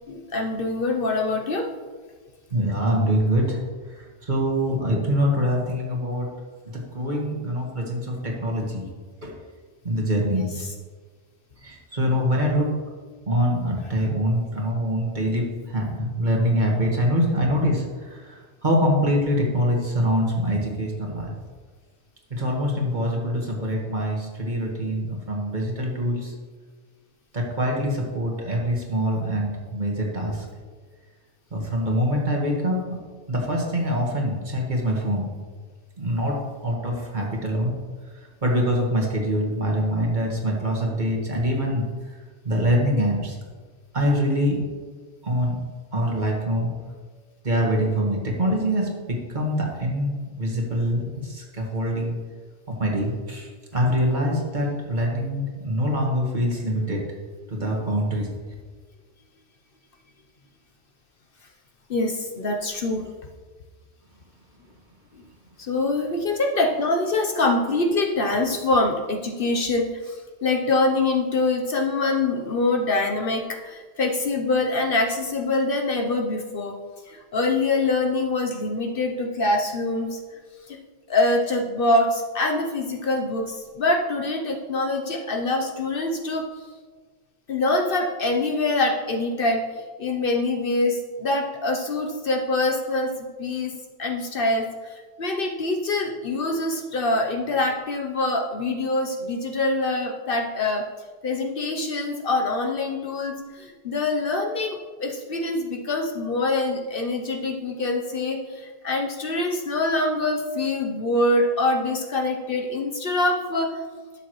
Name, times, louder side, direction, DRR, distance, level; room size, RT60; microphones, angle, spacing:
voice 1, 0.1-1.7 10.2-10.5 61.9-63.0 65.6-76.8 77.1-80.2 80.7-80.8 81.1-86.5 87.5-93.7 94.0-100.9 101.2-113.8, left 2 dB, 55° left, 2 dB, 0.9 m, -24 dB
voice 2, 2.5-3.6 3.9-6.3 6.7-8.8 9.2-9.3 9.8-10.5 11.6-12.7 13.3-21.3 22.3-26.3 27.3-30.5 31.5-33.0 33.3-35.3 36.0-37.7 38.4-41.9 42.4-43.4 43.9-44.6 45.2-45.6 45.9-46.7 47.4-52.2 52.7-57.0 57.5-58.3, equal, 40° right, -1 dB, 1.7 m, -24 dB
12.0 x 7.1 x 3.1 m, 1.4 s
omnidirectional pair, 1.2 m